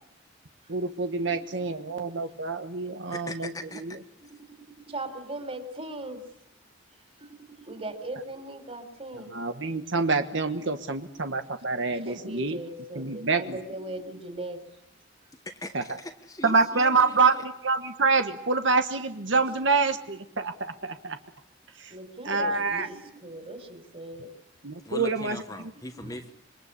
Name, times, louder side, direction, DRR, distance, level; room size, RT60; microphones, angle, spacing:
voice 1, 0.7-4.0 9.3-12.6 12.9-13.6 15.7-16.0 16.4-21.2 21.8-21.9 22.2-22.9 24.6-25.4, right 4 dB, 65° right, 7 dB, 1.3 m, -26 dB
voice 2, 3.1-3.8 15.4-17.4 24.8-26.3, left 1 dB, 15° left, 6 dB, 1.4 m, -40 dB
voice 3, 4.9-6.2 7.2-9.3 12.0-14.6 21.9-24.3 24.9-25.0 25.9-26.2, right 1 dB, 30° right, 8 dB, 3.9 m, -39 dB
27.5 x 23.0 x 8.5 m, 0.79 s
head